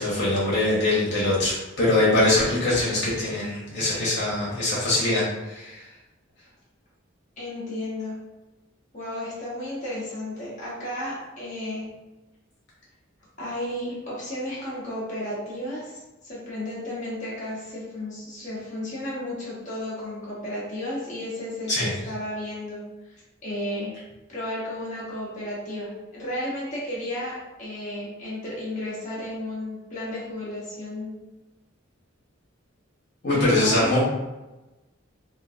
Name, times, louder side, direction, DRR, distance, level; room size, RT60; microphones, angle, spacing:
voice 1, 0.0-5.8 21.7-21.9 33.2-34.0, left 2 dB, 60° left, -7 dB, 1.2 m, -23 dB
voice 2, 7.4-8.2 8.9-11.8 13.4-22.9 23.4-23.9 24.3-31.1 33.3-33.9, left 1 dB, 40° left, -7 dB, 1.1 m, -33 dB
3.0 x 2.6 x 2.6 m, 1.0 s
head